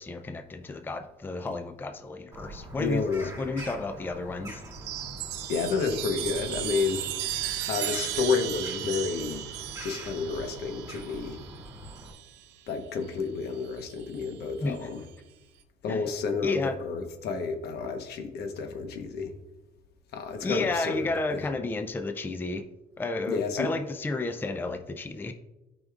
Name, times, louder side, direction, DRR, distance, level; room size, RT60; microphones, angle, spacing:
voice 1, 0.0-3.0 3.4-4.6 14.6-14.9 15.9-16.1 16.4-16.8 20.4-22.7 23.0-25.3, left 2 dB, 10° left, 8 dB, 0.4 m, -32 dB
Bird vocalization bird call bird song, 2.3-12.1, right 1 dB, 20° right, 2.7 m, -44 dB
voice 2, 2.8-3.3 5.5-7.0 7.7-9.5 9.8-11.4 12.7-15.0 15.8-19.3 20.1-21.5 23.3-23.7, left 5 dB, 70° left, 6 dB, 1.1 m, -30 dB
Chime, 4.6-12.4 13.7-14.3, right 12 dB, 85° right, 0.6 m, -36 dB
12.5 x 5.2 x 2.4 m, 1.0 s
cardioid pair, 110°, 17 cm